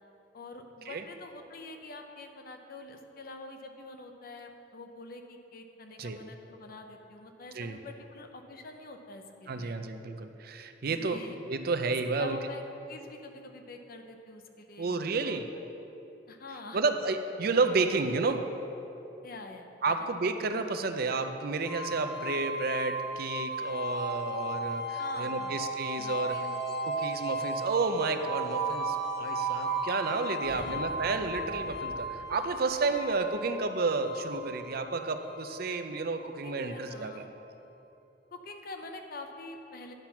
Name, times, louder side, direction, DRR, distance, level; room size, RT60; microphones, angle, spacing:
voice 1, 0.3-9.8 10.9-11.4 12.1-12.6 12.9-15.0 15.2-15.4 16.3-16.9 19.2-20.0 25.0-25.6 26.0-26.5 30.5-30.8 36.4-37.3 38.3-39.9, left 2 dB, 55° left, 5 dB, 0.8 m, -46 dB
voice 2, 9.5-11.2 11.5-12.4 14.8-15.4 16.7-18.4 19.8-26.3 26.9-37.2, right 3 dB, 55° right, 8 dB, 0.5 m, -31 dB
sound 1, 21.6-36.5, right 2 dB, 5° left, 1.4 m, -35 dB
sound 2, 30.4-34.8, right 1 dB, 85° right, 1.0 m, -49 dB
10.5 x 6.0 x 5.8 m, 2.9 s
head